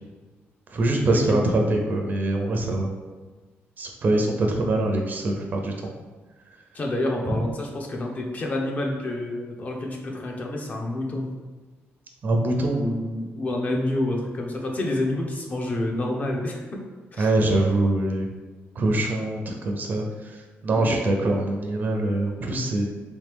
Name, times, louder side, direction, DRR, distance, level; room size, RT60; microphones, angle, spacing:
voice 1, 0.7-2.9 3.8-5.9 7.3-7.4 12.2-12.8 17.2-18.3 18.8-20.0 20.6-22.9, right 2 dB, 45° right, 2 dB, 0.5 m, -23 dB
voice 2, 6.7-11.3 12.7-16.6 17.1-17.3 20.7-21.1, left 1 dB, 35° left, 0 dB, 0.7 m, -28 dB
3.3 x 3.1 x 3.4 m, 1.3 s
cardioid pair, 115°, 4 cm